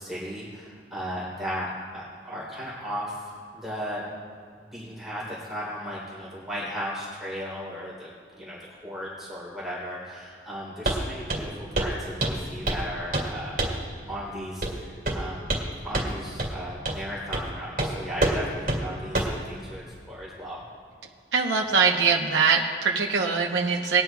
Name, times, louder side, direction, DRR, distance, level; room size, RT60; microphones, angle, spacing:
voice 1, 0.0-3.2 3.5-4.0 4.7-8.1 8.4-13.7 14.1-15.5 15.8-20.6, equal, ahead, -7 dB, 3.1 m, -36 dB
Walk footsteps, 10.8-11.0 11.3-11.5 11.7-11.9 12.2-12.9 13.1-13.3 13.6-13.8 14.6-14.8 15.0-15.7 15.9-16.1 16.4-16.5 16.8-17.0 17.3-17.5 17.8-17.9 18.2-18.4 18.7-18.8 19.1-19.4, right 2 dB, 50° right, 2.2 m, -26 dB
voice 2, 21.3-24.0, right 5 dB, 90° right, 0 dB, 0.8 m, -22 dB
20.0 x 11.0 x 2.3 m, 2.3 s
head